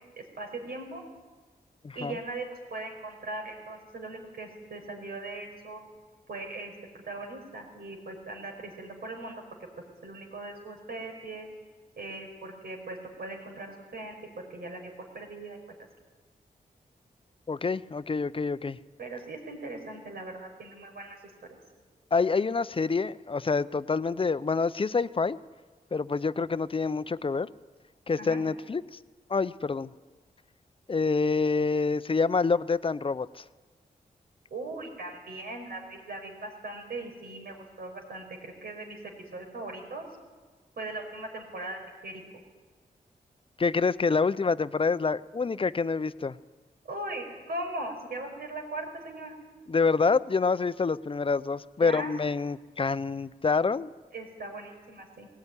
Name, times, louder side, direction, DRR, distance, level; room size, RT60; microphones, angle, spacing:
voice 1, 0.2-1.0 2.0-5.8 6.3-6.7 7.1-9.4 10.0-11.5 12.0-15.6 19.0-21.2 28.2-28.4 34.5-39.0 39.3-40.1 40.8-42.2 46.9-49.3 51.8-52.1 54.1-55.3, right 2 dB, 85° right, 2 dB, 5.3 m, -39 dB
voice 2, 1.8-2.2 17.5-18.8 22.1-25.4 25.9-27.5 28.1-29.0 29.3-29.9 30.9-33.4 43.6-46.4 49.7-53.9, left 4 dB, 35° left, 15 dB, 0.6 m, -27 dB
19.5 x 18.0 x 9.9 m, 1.4 s
wide cardioid pair, 85°, 16 cm